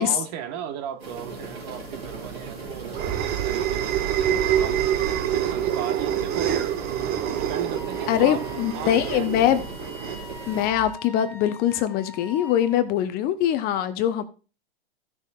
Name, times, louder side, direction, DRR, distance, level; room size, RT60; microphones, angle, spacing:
voice 1, 0.0-4.8 5.3-6.5 7.3-8.5 8.7-9.6 10.5-10.6, right 9 dB, 45° right, 1.4 m, -36 dB
sound 1, 1.0-10.7, right 3 dB, 85° right, 4.8 m, -39 dB
sound 2, 2.1-10.9, right 10 dB, 30° right, 1.1 m, -26 dB
Wind instrument woodwind instrument, 7.7-12.9, left 4 dB, 5° left, 1.6 m, -43 dB
voice 2, 8.1-9.6 10.5-14.2, left 11 dB, 30° left, 0.8 m, -23 dB
16.0 x 6.5 x 2.4 m
hypercardioid pair, 110°, 30 cm